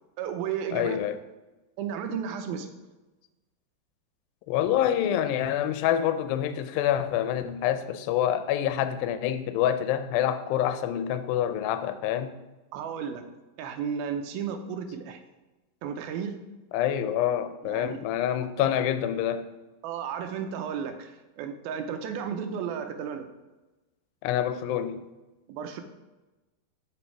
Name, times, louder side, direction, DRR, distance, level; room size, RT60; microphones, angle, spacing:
voice 1, 0.2-1.0 1.8-2.7 12.7-13.2 13.6-15.2 15.8-16.4 17.7-18.0 18.6-18.7 19.8-23.3 25.5-25.8, right 7 dB, 85° right, 2.5 m, -33 dB
voice 2, 0.7-1.2 4.5-12.3 16.7-19.5 24.2-25.0, left 10 dB, 80° left, 2.3 m, -27 dB
7.3 x 6.2 x 4.5 m
omnidirectional pair, 4.4 m